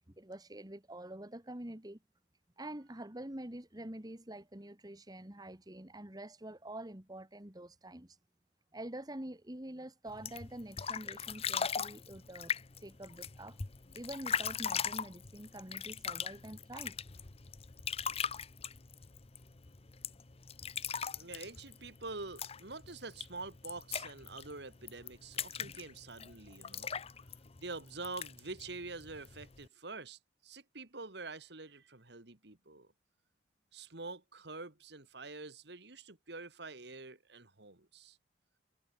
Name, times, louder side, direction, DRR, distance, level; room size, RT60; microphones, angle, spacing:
voice 1, 0.2-2.0 2.6-8.2 8.7-12.5 12.8-13.6 13.9-17.0, right 1 dB, 20° right, 1.8 m, -46 dB
sound 1, 10.1-29.7, left 7 dB, 35° left, 0.8 m, -41 dB
voice 2, 21.2-26.9 27.6-32.9 33.7-38.2, right 3 dB, 65° right, 2.4 m, -46 dB
head